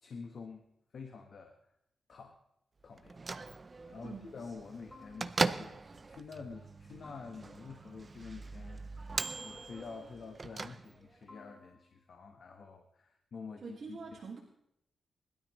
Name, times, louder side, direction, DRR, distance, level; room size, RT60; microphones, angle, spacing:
voice 1, 0.0-1.7 2.1-2.4 2.8-14.2, left 5 dB, 55° left, 4 dB, 1.2 m, -48 dB
Bell / Microwave oven, 3.0-11.3, right 3 dB, 30° right, 0.5 m, -40 dB
sound 1, 4.9-5.7 7.0-7.8 9.2-10.0 11.3-12.1, left 3 dB, 20° left, 6.2 m, -58 dB
voice 2, 13.6-14.4, right 5 dB, 55° right, -2 dB, 2.0 m, -44 dB
20.5 x 12.5 x 3.1 m, 0.75 s
wide cardioid pair, 130°, 0 cm